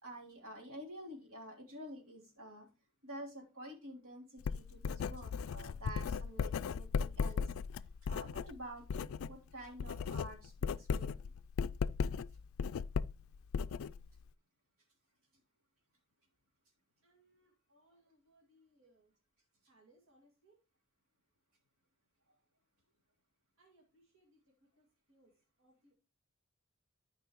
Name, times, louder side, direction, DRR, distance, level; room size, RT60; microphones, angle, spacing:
voice 1, 0.0-2.7 3.0-7.4 8.0-11.3, equal, 90° right, -1 dB, 3.1 m, -49 dB
Writing, 4.4-9.4 9.7-14.3, left 6 dB, 75° left, 0.3 m, -37 dB
voice 2, 17.0-19.1 19.7-20.6 23.6-25.3 25.6-25.9, right 1 dB, 70° right, -1 dB, 2.2 m, -69 dB
13.0 x 5.4 x 3.0 m, 0.32 s
head